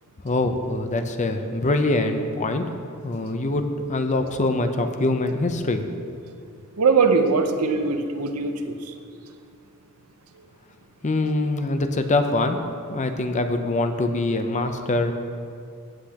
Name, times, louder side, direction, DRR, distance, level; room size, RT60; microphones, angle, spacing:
voice 1, 0.2-2.7 3.0-3.6 3.9-5.9 11.0-12.6 12.9-15.1, left 2 dB, 35° left, 7 dB, 0.6 m, -24 dB
voice 2, 6.8-8.9, right 4 dB, 85° right, 6 dB, 0.8 m, -21 dB
15.5 x 8.4 x 2.9 m, 2.4 s
head